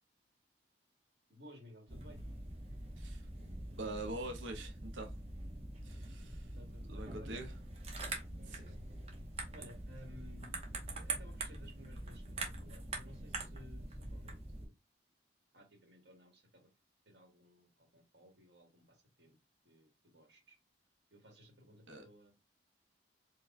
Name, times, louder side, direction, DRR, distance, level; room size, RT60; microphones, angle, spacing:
voice 1, 1.3-2.2 6.5-7.4 8.0-8.8 9.5-10.5 10.9-14.7 15.5-16.7 17.0-19.4 19.6-20.6 21.1-22.3, equal, 65° right, 1.4 m, -58 dB
sound 1, 1.9-14.7, right 2 dB, 35° right, 0.8 m, -44 dB
voice 2, 3.0-3.3 3.8-5.2 5.8-6.6 6.9-7.5 8.5-8.7 21.9-22.0, right 2 dB, 85° right, 0.6 m, -44 dB
4.6 x 2.1 x 2.5 m
head